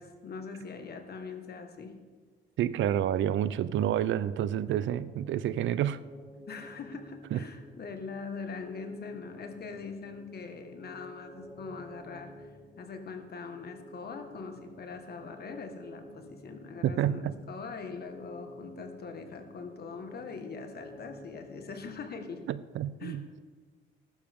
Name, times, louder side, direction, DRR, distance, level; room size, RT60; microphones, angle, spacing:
voice 1, 0.0-1.9 6.5-22.4 23.0-23.2, left 5 dB, 55° left, 6 dB, 1.6 m, -42 dB
voice 2, 2.6-6.0 7.3-7.4 16.8-17.3 22.5-23.4, right 11 dB, 70° right, 15 dB, 0.5 m, -29 dB
sound 1, 3.9-22.7, left 1 dB, 5° right, 3.7 m, -51 dB
14.5 x 11.5 x 3.7 m, 1.5 s
cardioid pair, 90°, 20 cm